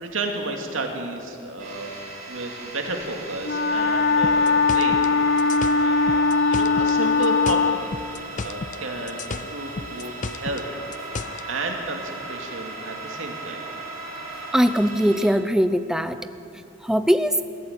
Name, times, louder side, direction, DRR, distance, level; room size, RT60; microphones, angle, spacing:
voice 1, 0.0-2.0 2.3-5.0 5.8-6.2 6.5-10.7 11.2-13.6, right 2 dB, 75° right, 2 dB, 2.6 m, -32 dB
sound 1, 1.6-15.3, right 2 dB, 40° right, 6.2 m, -37 dB
Wind instrument woodwind instrument, 3.4-7.8, left 4 dB, 60° left, 1.0 m, -20 dB
sound 2, 4.2-7.0 7.2-8.8 9.1-11.4, left 4 dB, 40° left, 0.5 m, -33 dB
voice 2, 14.5-16.2 16.8-17.4, equal, 5° right, 10 dB, 0.6 m, -20 dB
21.5 x 14.5 x 8.8 m, 2.6 s
head